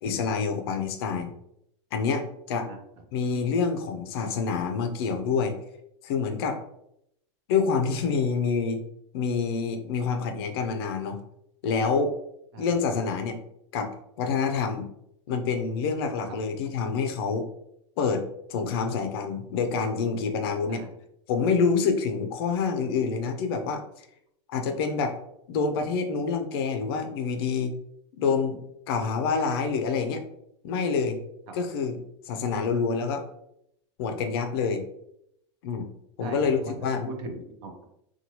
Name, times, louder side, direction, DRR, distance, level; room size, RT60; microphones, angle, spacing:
voice 1, 0.0-1.3 1.9-2.7 3.1-5.5 6.0-6.6 7.5-8.8 9.1-11.2 11.6-12.1 12.6-13.4 13.7-13.9 14.2-14.9 15.3-17.5 18.0-20.8 21.3-24.1 24.5-25.2 25.5-27.7 28.2-28.6 28.9-30.2 30.6-31.2 31.5-32.0 32.2-33.2 34.0-34.8 35.6-35.9 36.2-37.1, left 5 dB, 55° left, 6 dB, 0.4 m, -27 dB
voice 2, 36.2-37.9, right 2 dB, 35° right, 4 dB, 0.4 m, -39 dB
2.8 x 2.2 x 2.9 m, 0.76 s
supercardioid pair, 170°, 15 cm